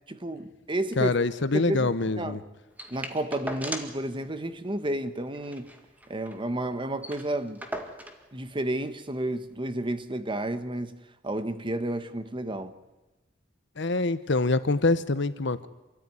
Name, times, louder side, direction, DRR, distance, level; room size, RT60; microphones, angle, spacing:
voice 1, 0.1-1.2 1.5-1.9 2.2-2.4 2.9-5.7 6.1-7.6 8.3-11.0 11.2-12.7, right 1 dB, 25° right, 1.2 m, -31 dB
voice 2, 1.0-2.4 13.8-15.7, left 3 dB, 65° left, 1.0 m, -25 dB
sound 1, 2.8-4.1 4.4-4.5 4.8-4.9 5.3-6.4 6.7-6.8 7.0-8.3 9.1-9.2, right 1 dB, 10° right, 1.8 m, -38 dB
26.5 x 14.0 x 9.9 m
head